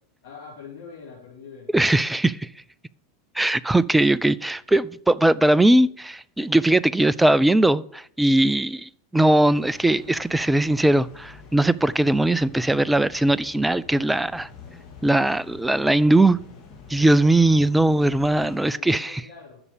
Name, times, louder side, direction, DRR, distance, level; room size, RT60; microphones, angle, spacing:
voice 1, 0.2-1.7 18.5-19.6, left 5 dB, 60° left, 4.0 m, -43 dB
voice 2, 1.7-2.5 3.4-14.5 15.0-16.4 16.9-19.2, right 1 dB, 5° right, 0.4 m, -20 dB
sound 1, 9.5-18.7, left 4 dB, 30° left, 3.7 m, -46 dB
11.0 x 6.8 x 6.8 m
figure-of-eight pair, 85°, 0 cm